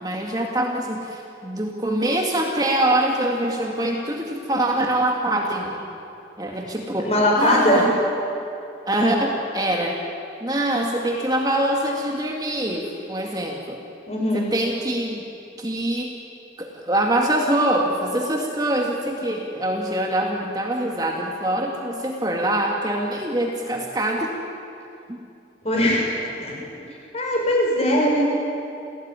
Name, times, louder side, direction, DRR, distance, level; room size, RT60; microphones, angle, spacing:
voice 1, 0.0-5.8 6.4-7.1 7.4-7.8 8.9-10.0 10.4-13.8 14.3-15.2 15.6-16.2 16.6-24.3 25.1-25.2, right 1 dB, 20° right, 0 dB, 2.0 m, -24 dB
voice 2, 7.0-7.9 14.1-14.4 25.6-26.1 26.4-26.6 27.1-28.2, left 1 dB, 35° left, -1 dB, 6.5 m, -20 dB
28.5 x 17.0 x 9.7 m, 2.6 s
head